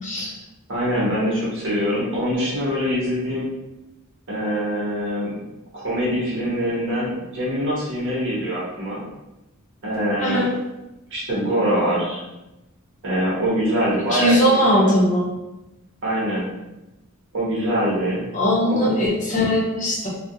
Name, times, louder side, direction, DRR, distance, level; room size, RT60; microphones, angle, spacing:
voice 1, 0.0-0.3 10.2-10.5 14.1-15.3 18.3-20.1, equal, 35° left, -4 dB, 0.7 m, -19 dB
voice 2, 0.7-3.5 4.3-5.4 5.7-9.0 9.8-10.5 11.1-12.2 13.0-14.9 16.0-16.5 17.3-18.2 18.6-19.0, equal, 60° right, -6 dB, 0.8 m, -24 dB
2.4 x 2.1 x 2.7 m, 0.98 s
head